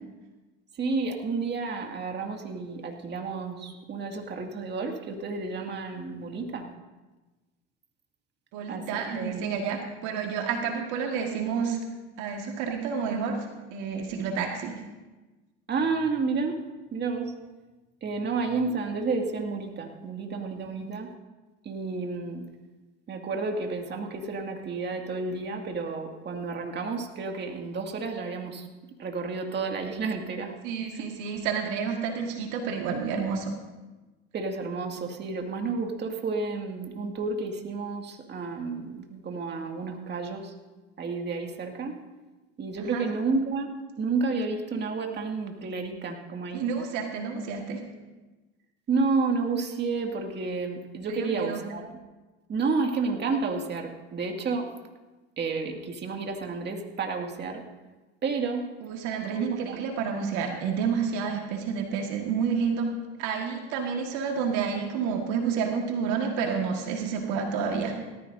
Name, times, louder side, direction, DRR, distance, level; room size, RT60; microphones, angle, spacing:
voice 1, 0.7-6.7 8.7-9.4 15.7-16.6 16.9-17.3 18.0-21.1 21.6-22.5 23.1-28.7 29.0-30.6 30.9-31.1 34.3-40.5 41.0-42.0 42.6-46.6 48.9-51.9 52.5-54.7 55.4-57.6 58.2-58.7 59.3-59.8, right 4 dB, 35° right, 2 dB, 2.2 m, -31 dB
voice 2, 8.5-11.8 12.2-14.8 20.6-20.7 30.6-33.5 42.8-43.0 46.5-47.8 51.1-51.6 58.8-62.9 63.2-68.0, right 6 dB, 65° right, 3 dB, 1.7 m, -29 dB
18.0 x 14.0 x 2.7 m, 1.2 s
hypercardioid pair, 90°, 32 cm